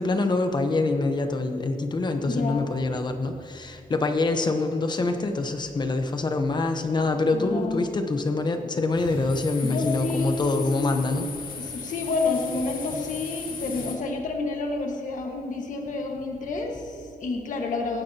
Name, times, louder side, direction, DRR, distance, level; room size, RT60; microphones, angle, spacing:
voice 1, 0.0-11.3, left 3 dB, 30° left, 6 dB, 0.9 m, -25 dB
voice 2, 2.2-2.8 7.3-7.8 9.6-11.3 11.6-18.0, left 3 dB, 60° left, 1 dB, 1.6 m, -29 dB
sound 1, 9.0-14.0, left 5 dB, 75° left, 2.0 m, -37 dB
19.0 x 15.5 x 2.9 m, 2.6 s
wide cardioid pair, 175°, 15 cm